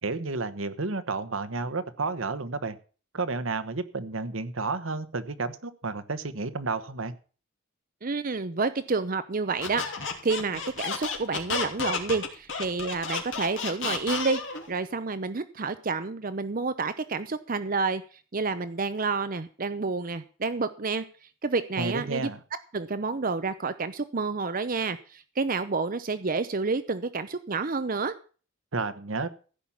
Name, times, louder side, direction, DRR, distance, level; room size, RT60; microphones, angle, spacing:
voice 1, 0.0-2.8 3.1-7.1 21.8-22.4 28.7-29.3, right 3 dB, 75° right, 12 dB, 1.2 m, -31 dB
voice 2, 8.0-14.4 14.7-18.0 18.3-21.0 21.4-22.3 22.7-28.1, right 4 dB, 45° right, 12 dB, 0.7 m, -29 dB
Squeak, 9.6-14.7, left 5 dB, 60° left, 2.8 m, -31 dB
15.5 x 5.8 x 8.6 m, 0.39 s
head